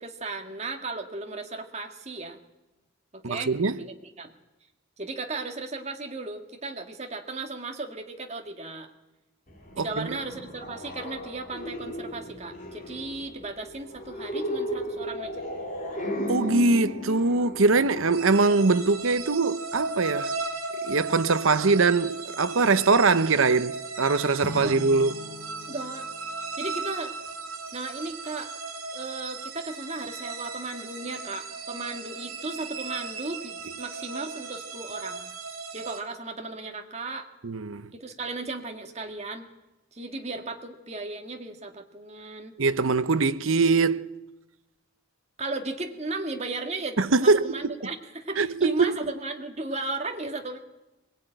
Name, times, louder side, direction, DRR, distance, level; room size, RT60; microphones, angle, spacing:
voice 1, 0.0-2.4 3.1-3.5 3.8-4.3 5.0-8.9 9.8-15.5 24.6-24.8 25.7-26.1 26.6-27.1 27.7-28.5 28.9-35.3 35.7-37.3 37.9-39.5 39.9-42.5 45.4-50.6, right 3 dB, 30° right, 1.9 m, -35 dB
voice 2, 3.2-3.8 9.8-10.2 16.3-20.3 20.8-25.2 37.4-37.9 42.6-44.1 47.0-47.7 48.4-49.0, right 3 dB, 70° right, 0.8 m, -22 dB
sound 1, 9.5-19.2, equal, 35° left, 4.2 m, -35 dB
sound 2, 18.1-36.0, right 4 dB, 85° right, 2.8 m, -37 dB
sound 3, 24.4-27.2, left 3 dB, 10° right, 6.5 m, -41 dB
22.5 x 18.5 x 9.0 m
head